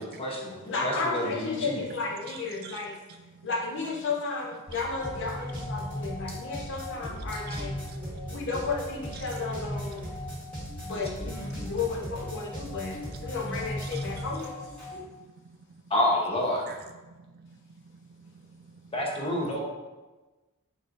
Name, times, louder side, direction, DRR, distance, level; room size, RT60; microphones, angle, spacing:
voice 1, 0.0-1.8 15.9-16.7 18.9-19.6, left 1 dB, 25° left, -2 dB, 0.8 m, -28 dB
voice 2, 0.7-3.0 3.4-7.8 8.3-10.1 10.8-14.6, left 4 dB, 55° left, -1 dB, 0.8 m, -33 dB
voice 3, 2.3-2.8 3.1-3.5 5.6-6.0 6.8-6.9 7.5-8.5 9.1-9.2 10.3-11.2 11.7-11.8 13.8-14.2 15.0-15.2 15.5-15.8 16.7-16.8 17.1-18.9, right 6 dB, 45° right, 6 dB, 0.3 m, -50 dB
sound 1, 4.7-15.0, equal, 5° left, 1.5 m, -37 dB
4.3 x 4.1 x 2.5 m, 1.2 s
head